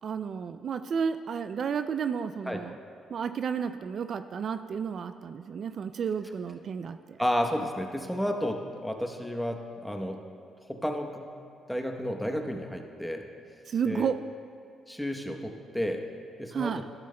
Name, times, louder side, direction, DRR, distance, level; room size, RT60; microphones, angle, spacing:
voice 1, 0.0-2.8 3.1-7.2 13.7-14.2 16.5-16.8, right 7 dB, 55° right, 10 dB, 0.3 m, -32 dB
voice 2, 7.2-10.2 10.7-11.3 11.7-13.2 13.8-14.1 14.9-16.1 16.4-16.7, equal, 5° left, 4 dB, 0.9 m, -31 dB
12.5 x 12.0 x 2.2 m, 2.4 s
cardioid pair, 90°, 0 cm